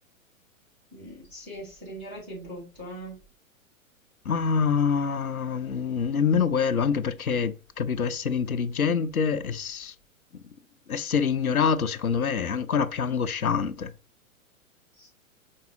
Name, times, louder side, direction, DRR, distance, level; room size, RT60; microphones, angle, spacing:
voice 1, 0.9-3.2 15.0-15.1, right 1 dB, ahead, 0.3 m, -40 dB
voice 2, 4.3-9.9 10.9-13.9, left 6 dB, 90° left, 0.6 m, -26 dB
5.3 x 3.6 x 2.7 m
figure-of-eight pair, 110°, 42 cm